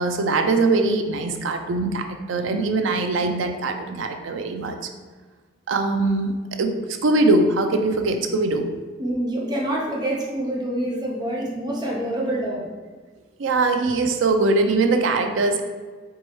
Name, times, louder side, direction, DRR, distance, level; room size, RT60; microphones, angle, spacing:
voice 1, 0.0-4.8 5.7-8.7 13.4-15.6, right 3 dB, 85° right, 6 dB, 0.4 m, -22 dB
voice 2, 9.0-12.7, right 1 dB, 20° right, -3 dB, 0.7 m, -26 dB
4.5 x 3.0 x 3.1 m, 1.4 s
head